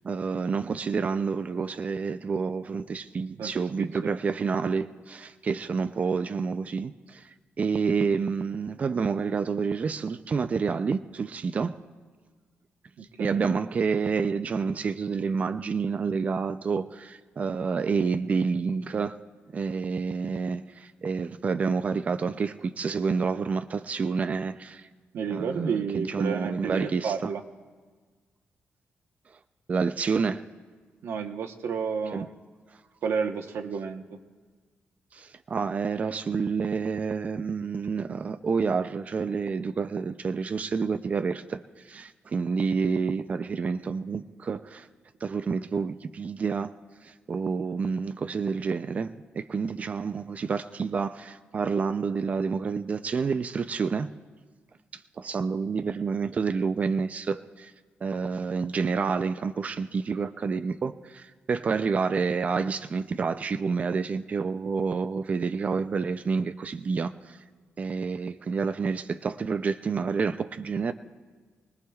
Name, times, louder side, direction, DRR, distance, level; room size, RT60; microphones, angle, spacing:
voice 1, 0.0-11.8 13.2-19.2 19.5-24.9 25.3-27.3 29.7-30.4 32.1-32.3 35.1-44.9 45.2-46.7 47.0-54.1 54.9-57.7 58.0-67.4 67.8-70.9, right 5 dB, 35° right, 0.4 m, -29 dB
voice 2, 3.8-4.2 13.0-13.4 25.1-27.4 31.0-32.3 33.0-34.0, right 6 dB, 80° right, 1.0 m, -31 dB
27.5 x 19.5 x 2.3 m
wide cardioid pair, 150°, 4 cm